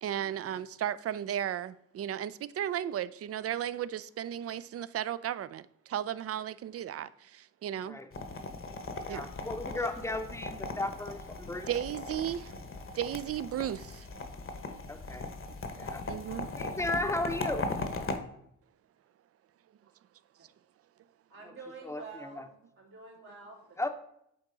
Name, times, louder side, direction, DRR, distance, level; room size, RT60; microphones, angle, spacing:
voice 1, 0.0-2.3 2.6-5.6 5.9-7.1 7.6-8.0 9.1-9.2 11.7-12.5 13.0-13.8 16.1-16.5, right 10 dB, 45° right, 0.4 m, -34 dB
sound 1, 8.1-18.2, left 3 dB, 35° left, 1.0 m, -38 dB
voice 2, 9.0-11.7 14.9-15.3 15.8-16.0 16.6-17.7 21.8-22.5 23.8-23.9, left 2 dB, 10° left, 0.8 m, -35 dB
voice 3, 21.3-23.8, right 4 dB, 80° right, 2.7 m, -48 dB
8.7 x 3.5 x 3.9 m
supercardioid pair, 60°, 35 cm